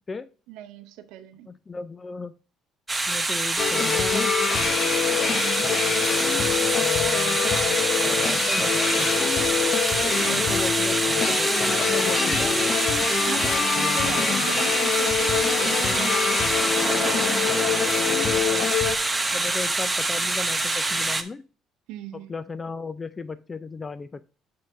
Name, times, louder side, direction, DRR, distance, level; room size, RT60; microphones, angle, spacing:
voice 1, 0.5-1.5 10.2-10.5 13.2-17.1 21.9-22.4, right 11 dB, 75° right, 0.6 m, -39 dB
voice 2, 1.5-2.3 3.1-4.4 6.7-7.4 8.0-9.1 10.3-12.6 13.7-14.4 16.9-17.0 18.1-18.7 19.3-21.4 22.3-24.2, left 4 dB, 30° left, 0.4 m, -36 dB
sound 1, 2.9-21.2, right 2 dB, 20° right, 1.0 m, -25 dB
sound 2, 3.6-19.0, left 7 dB, 55° left, 0.9 m, -25 dB
6.1 x 4.8 x 5.2 m
hypercardioid pair, 65°, 0 cm